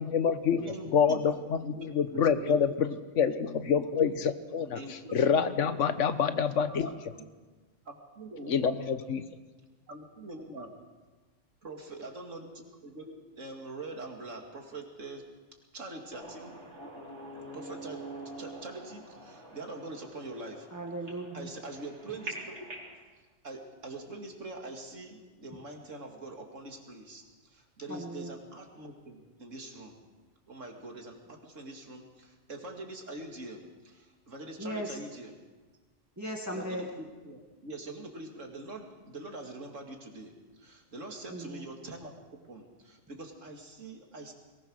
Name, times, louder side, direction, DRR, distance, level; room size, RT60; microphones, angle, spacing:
voice 1, 0.0-0.6 0.9-6.9 8.5-9.2, left 7 dB, 80° left, 11 dB, 1.4 m, -27 dB
voice 2, 0.6-1.3 1.6-2.6 4.8-5.8 6.5-7.3 7.9-8.7 9.9-10.7 11.6-15.2 15.7-16.6 17.5-18.0 18.4-20.7 21.3-22.7 23.4-30.0 30.5-35.3 36.5-42.1 42.5-44.3, right 2 dB, 90° right, 2 dB, 2.9 m, -44 dB
sound 1, 16.1-23.0, right 1 dB, 65° right, 4.4 m, -45 dB
voice 3, 20.7-21.5 27.9-28.3 34.6-35.0 36.2-36.9 41.3-41.7, right 1 dB, 15° right, 0 dB, 1.8 m, -37 dB
22.0 x 19.0 x 6.5 m, 1.3 s
omnidirectional pair, 1.3 m